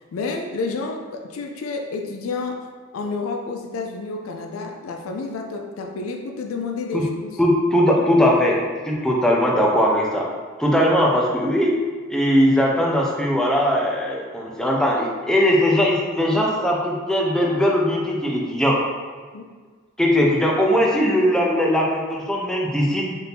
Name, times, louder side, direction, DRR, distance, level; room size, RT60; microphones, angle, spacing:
voice 1, 0.1-7.4 19.3-19.4, left 3 dB, 90° left, 3 dB, 0.4 m, -30 dB
voice 2, 7.4-8.6 8.9-10.3 10.6-11.7 12.1-18.8 20.0-23.2, equal, 5° left, -3 dB, 0.5 m, -19 dB
4.3 x 2.6 x 3.4 m, 1.5 s
head